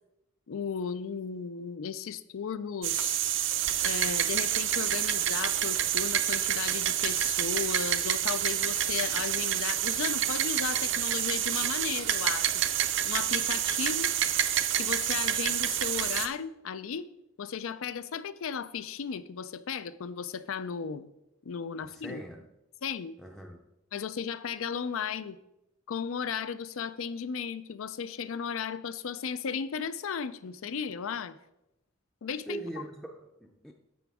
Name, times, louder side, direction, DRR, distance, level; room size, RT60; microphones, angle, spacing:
voice 1, 0.5-3.2 3.8-12.6 13.0-14.1 14.8-17.1 17.4-21.1 21.5-22.2 22.8-23.1 23.9-25.4 25.9-31.4 32.2-32.6, left 6 dB, 90° left, 15 dB, 0.5 m, -35 dB
sound 1, 2.8-16.3, right 11 dB, 60° right, 0.5 m, -28 dB
voice 2, 21.8-22.5 23.2-23.6 32.5-33.7, right 1 dB, ahead, 2 dB, 0.4 m, -42 dB
10.0 x 7.0 x 3.5 m, 0.88 s
head